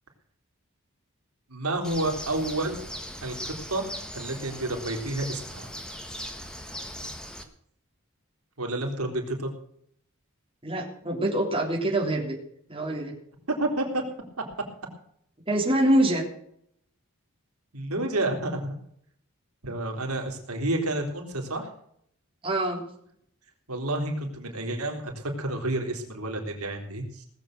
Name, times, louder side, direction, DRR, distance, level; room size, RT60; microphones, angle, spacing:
voice 1, 1.5-2.8 3.2-5.7 8.6-9.5 13.5-14.0 17.7-18.8 19.6-21.7 23.7-27.3, right 1 dB, 90° right, 2 dB, 3.6 m, -30 dB
Bird, 1.8-7.4, equal, 5° left, 1.4 m, -39 dB
voice 2, 10.6-12.4 12.7-13.1 15.5-16.2 22.4-22.8, right 1 dB, 25° right, -1 dB, 3.3 m, -25 dB
18.5 x 7.7 x 6.6 m, 0.68 s
head